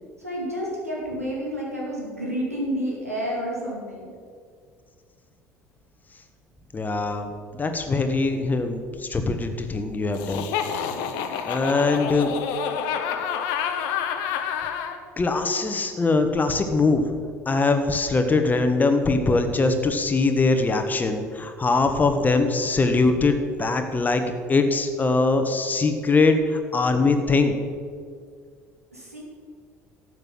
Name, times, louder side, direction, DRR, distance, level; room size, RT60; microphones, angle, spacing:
voice 1, 0.2-4.1 28.9-29.2, equal, 85° right, -4 dB, 3.0 m, -30 dB
voice 2, 6.7-10.4 11.5-12.3 15.2-17.1 17.4-27.5, left 3 dB, 20° left, 7 dB, 1.5 m, -22 dB
Laughter, 10.1-15.0, left 8 dB, 60° left, 1.2 m, -28 dB
12.0 x 8.1 x 7.7 m, 2.1 s
figure-of-eight pair, 60°, 8 cm